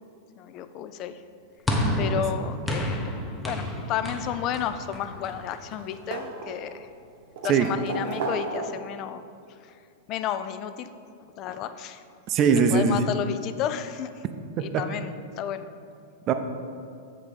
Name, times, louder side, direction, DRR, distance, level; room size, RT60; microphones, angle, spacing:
voice 1, 0.4-1.2 1.9-6.9 7.4-9.3 9.6-9.7 10.1-10.9 11.4-12.0 12.7-14.1 14.6-15.7, left 10 dB, 40° left, 11 dB, 0.3 m, -32 dB
sound 1, 1.7-6.1, equal, 5° left, 0.8 m, -30 dB
sound 2, 4.8-5.4 5.7-6.8 7.4-9.0 10.2-10.3 11.8-11.9 12.3-12.4, right 3 dB, 60° right, 0.8 m, -34 dB
voice 2, 12.3-13.0 14.6-14.8 16.3-16.4, right 6 dB, 35° right, 8 dB, 0.5 m, -21 dB
7.3 x 3.6 x 5.0 m, 2.4 s
hypercardioid pair, 120°, 0 cm